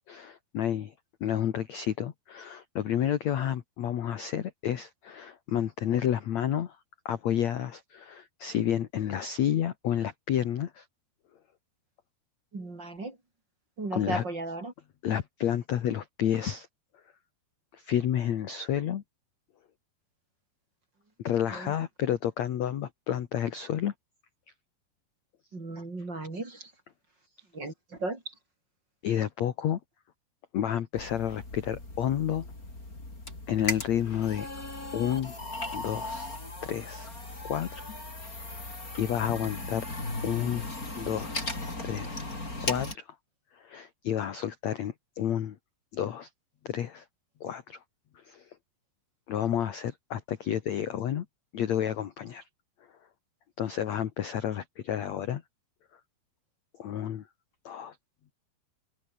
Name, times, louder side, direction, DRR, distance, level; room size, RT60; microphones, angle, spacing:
voice 1, 0.1-0.9 1.2-6.8 7.1-10.9 13.9-14.2 15.0-16.7 17.7-19.0 21.2-23.9 29.0-29.8 30.5-32.5 33.5-34.5 34.9-35.3 35.7-36.3 36.6-37.1 37.4-37.8 38.5-38.6 39.0-39.9 40.2-40.7 41.0-41.5 41.8-42.2 42.6-43.1 43.5-45.6 45.9-46.3 46.6-47.0 47.4-47.8 48.3-48.4 49.3-51.3 51.5-52.4 53.6-55.4 56.8-57.3 57.7-58.0, left 10 dB, 65° left, 1.9 m, -30 dB
voice 2, 12.5-13.2 13.8-14.7 21.5-21.7 25.5-26.7 27.5-28.3, right 2 dB, 25° right, 4.9 m, -36 dB
sound 1, 30.9-42.9, left 2 dB, 20° left, 6.4 m, -37 dB
open air
omnidirectional pair, 5.0 m